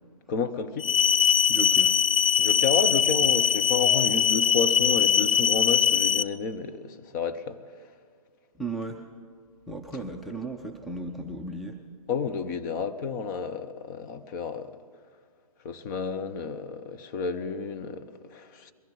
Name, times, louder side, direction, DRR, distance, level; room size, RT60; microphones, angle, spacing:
voice 1, 0.3-0.9 2.4-7.6 12.1-14.7 15.6-18.7, left 5 dB, 30° left, 0.8 m, -31 dB
sound 1, 0.8-6.2, left 8 dB, 60° left, 0.5 m, -22 dB
voice 2, 1.5-2.0 8.6-9.1 9.7-11.8, right 3 dB, ahead, 0.5 m, -35 dB
22.0 x 15.5 x 4.0 m
figure-of-eight pair, 130°, 19 cm